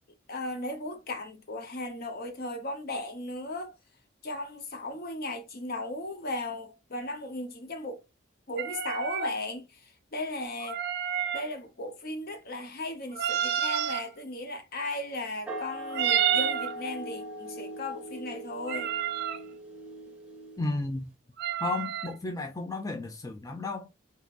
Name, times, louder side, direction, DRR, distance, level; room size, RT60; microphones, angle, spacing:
voice 1, 0.3-3.8 4.2-8.0 8.5-10.8 11.3-18.9, left 2 dB, 50° left, 0.8 m, -36 dB
sound 1, 8.6-9.3 10.6-11.5 13.1-14.0 15.9-16.7 18.6-19.4 21.4-22.1, right 9 dB, 55° right, 0.4 m, -29 dB
sound 2, 15.5-20.9, right 1 dB, 5° right, 0.8 m, -41 dB
voice 2, 20.6-21.1 21.6-23.9, left 3 dB, 20° left, 0.4 m, -33 dB
3.7 x 2.8 x 2.5 m
head